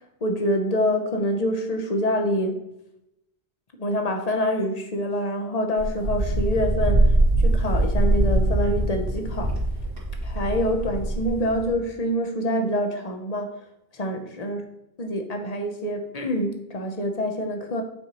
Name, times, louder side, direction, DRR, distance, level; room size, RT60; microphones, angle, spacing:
voice 1, 0.2-2.6 3.7-9.5 10.2-13.6 13.9-14.6 15.0-17.8, equal, 40° left, 4 dB, 0.9 m, -26 dB
Wind, 5.8-11.7, right 1 dB, 60° right, 2.1 m, -22 dB
8.8 x 4.4 x 3.0 m, 0.85 s
omnidirectional pair, 1.1 m